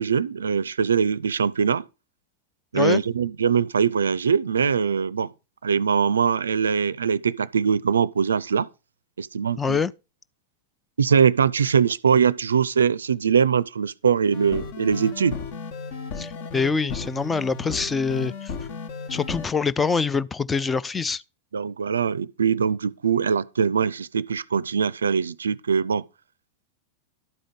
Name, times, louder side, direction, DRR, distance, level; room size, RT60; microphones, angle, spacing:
voice 1, 0.0-1.8 2.7-5.3 5.6-8.7 9.2-9.8 11.0-15.4 21.5-26.0, right 6 dB, 70° right, 0.4 m, -22 dB
voice 2, 9.6-9.9 16.2-18.5 19.1-21.2, left 5 dB, 15° left, 0.4 m, -25 dB
sound 1, 14.3-19.5, left 5 dB, 50° left, 1.2 m, -34 dB
12.0 x 5.0 x 5.3 m
figure-of-eight pair, 90°, 0 cm